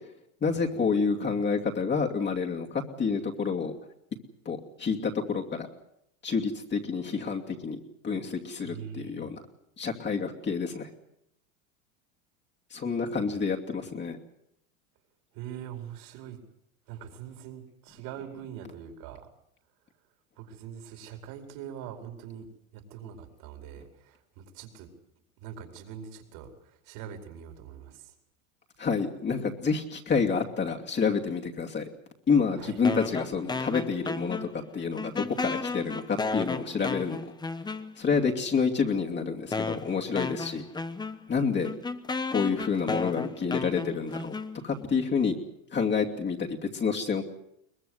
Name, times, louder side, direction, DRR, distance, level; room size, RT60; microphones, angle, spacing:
voice 1, 0.4-3.7 4.4-5.7 6.2-9.4 9.8-10.9 12.7-14.2 28.8-31.9 32.3-37.3 38.0-40.6 41.3-41.7 42.3-44.4 44.6-45.3 45.7-47.2, left 5 dB, 25° left, 0 dB, 2.7 m, -28 dB
voice 2, 8.6-9.3 13.2-13.4 15.3-16.4 16.9-19.2 20.4-22.5 22.7-24.9 25.4-28.1 32.6-32.8 40.4-40.6, right 9 dB, 60° right, 6 dB, 4.8 m, -43 dB
sound 1, 32.8-34.7 35.0-38.2 38.9-39.0 39.5-44.9, left 3 dB, 10° left, 1.0 m, -34 dB
23.0 x 20.5 x 8.1 m, 0.76 s
supercardioid pair, 110°, 40 cm